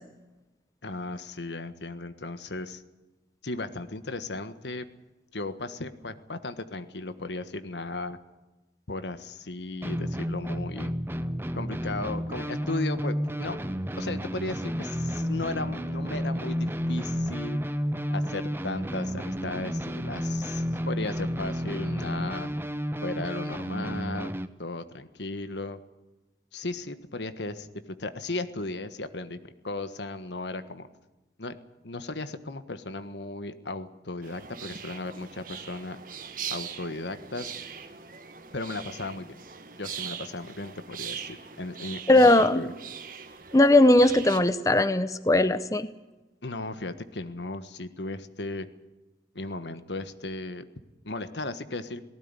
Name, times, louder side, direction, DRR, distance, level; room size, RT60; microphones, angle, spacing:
voice 1, 0.8-2.8 3.4-4.9 5.3-8.2 8.9-10.9 11.5-13.6 14.0-17.6 18.1-22.5 23.0-24.3 24.6-25.8 26.5-27.7 28.0-30.9 31.4-36.0 36.5-37.5 38.5-39.4 39.8-42.7 46.4-48.7 49.3-50.6 51.0-52.0, left 2 dB, 85° left, 11 dB, 1.5 m, -36 dB
sound 1, 9.8-24.5, equal, 15° right, 0.8 m, -31 dB
sound 2, 34.2-44.4, right 7 dB, 50° right, 1.8 m, -41 dB
voice 2, 42.1-42.6 43.5-45.9, left 1 dB, 20° left, 12 dB, 0.7 m, -19 dB
18.5 x 16.5 x 9.8 m, 1.1 s
head